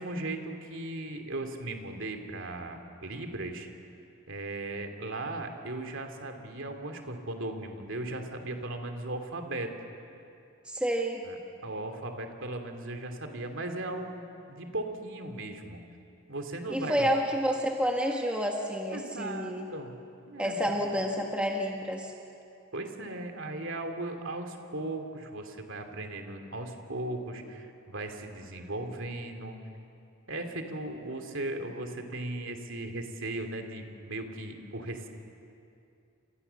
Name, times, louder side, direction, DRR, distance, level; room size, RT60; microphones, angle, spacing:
voice 1, 0.0-3.7 4.3-9.7 11.2-15.8 16.3-17.1 18.9-19.9 20.3-21.0 22.7-29.6 30.3-35.1, right 2 dB, 60° right, 4 dB, 2.9 m, -37 dB
voice 2, 10.7-11.2 16.7-19.7 20.4-22.1, equal, 5° right, 0 dB, 1.6 m, -29 dB
30.0 x 28.0 x 7.1 m, 2.7 s
head